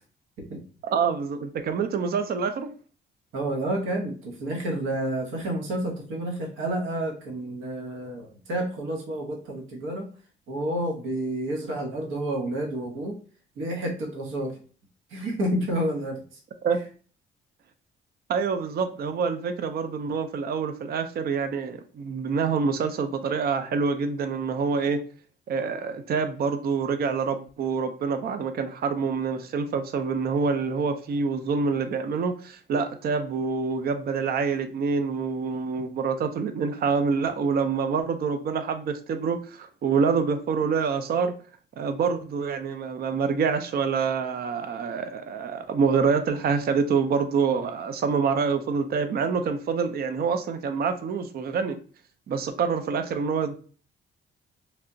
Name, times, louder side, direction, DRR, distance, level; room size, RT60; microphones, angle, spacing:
voice 1, 0.9-2.7 16.6-16.8 18.3-25.0 25.5-41.3 41.8-51.8 52.3-53.6, right 5 dB, 50° right, 8 dB, 0.5 m, -26 dB
voice 2, 3.3-10.1 10.5-13.1 13.6-14.6 15.1-16.4, right 1 dB, 80° right, 0 dB, 1.0 m, -30 dB
3.2 x 2.8 x 2.6 m, 0.40 s
cardioid pair, 90°, 20 cm